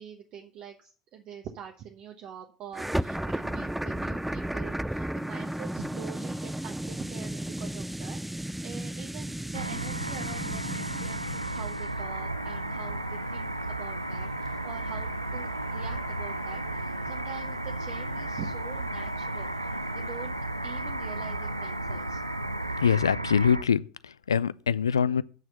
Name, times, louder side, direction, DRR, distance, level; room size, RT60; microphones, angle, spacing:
voice 1, 0.0-20.3 20.6-22.2, right 8 dB, 45° right, 1.1 m, -45 dB
sound 1, 2.7-11.9, right 1 dB, 5° right, 0.3 m, -34 dB
sound 2, 9.5-23.6, right 1 dB, 90° right, 0.4 m, -34 dB
sound 3, 11.9-22.8, right 3 dB, 70° right, 2.0 m, -47 dB
voice 2, 22.7-25.2, left 7 dB, 80° left, 0.3 m, -24 dB
9.1 x 6.2 x 5.6 m
figure-of-eight pair, 65°, 2 cm